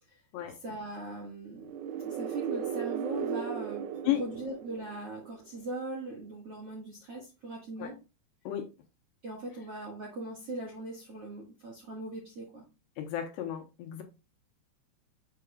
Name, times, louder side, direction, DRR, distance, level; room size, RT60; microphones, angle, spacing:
voice 1, 0.5-8.0 9.2-12.6, right 2 dB, 55° right, -2 dB, 1.6 m, -40 dB
sound 1, 1.6-5.4, right 8 dB, 80° right, 3.3 m, -36 dB
voice 2, 13.0-14.0, left 12 dB, 75° left, 4 dB, 2.8 m, -33 dB
7.6 x 6.4 x 2.3 m, 0.27 s
omnidirectional pair, 5.5 m